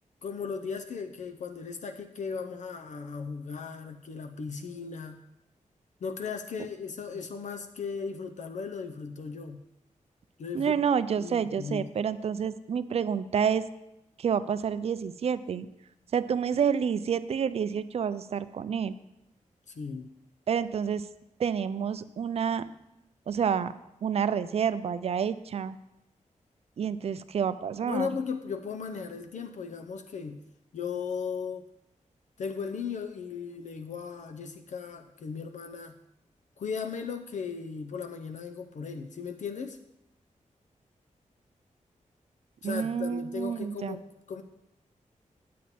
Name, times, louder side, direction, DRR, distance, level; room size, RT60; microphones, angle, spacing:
voice 1, 0.2-5.2 6.0-9.6 10.4-10.7 11.1-11.9 19.7-20.1 27.9-30.4 30.7-31.7 32.4-36.0 36.6-39.8 42.6-44.4, left 5 dB, 65° left, 6 dB, 0.6 m, -36 dB
voice 2, 10.5-13.6 14.2-15.7 16.1-18.9 20.5-21.0 21.4-22.6 23.3-23.7 24.0-25.8 26.8-28.1 42.6-44.0, right 7 dB, 50° right, 14 dB, 0.4 m, -28 dB
8.5 x 8.4 x 4.2 m, 0.86 s
wide cardioid pair, 170°, 13 cm